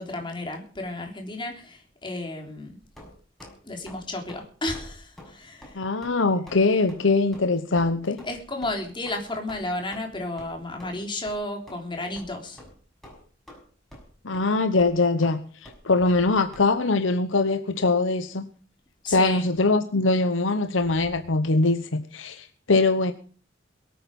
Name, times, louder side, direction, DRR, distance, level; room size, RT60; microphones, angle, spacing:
voice 1, 0.0-2.8 3.6-5.8 8.2-12.6 19.1-19.5, left 2 dB, 25° left, 2 dB, 3.5 m, -33 dB
sound 1, 2.9-3.5 3.9-4.0 4.3-4.5 4.7-4.9 5.2-5.3 5.6-5.8 6.0-6.2 6.5-6.6 6.9-7.0 7.3-7.5 7.8-7.9 8.2-8.3 8.6-8.7 9.1-9.2 9.5-9.6 9.9-10.0 10.4-10.5 10.8-11.0 11.3-11.4 11.7-11.8 12.2-12.3 12.6-12.7 13.0-13.6 13.9-14.1 14.3-14.4 14.8-14.9 15.2-15.3 15.6-15.8 16.1-16.2 16.5-16.7, left 1 dB, ahead, 6.3 m, -46 dB
voice 2, 5.7-8.2 14.2-18.4 19.0-23.1, left 3 dB, 75° left, 9 dB, 1.0 m, -22 dB
22.5 x 9.0 x 5.4 m, 0.43 s
head